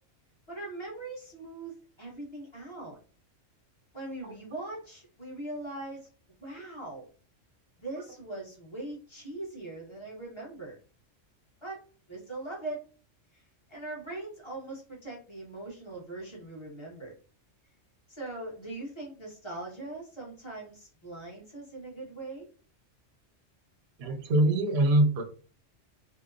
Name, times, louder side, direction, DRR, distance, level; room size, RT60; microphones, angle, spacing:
voice 1, 0.5-3.0 3.9-6.1 6.4-7.1 7.8-10.8 11.6-11.8 12.1-12.8 13.3-17.2 18.1-22.5, right 2 dB, 25° left, -3 dB, 0.8 m, -41 dB
voice 2, 24.0-25.2, right 1 dB, 65° right, 4 dB, 0.8 m, -23 dB
2.7 x 2.0 x 2.4 m, 0.38 s
omnidirectional pair, 1.3 m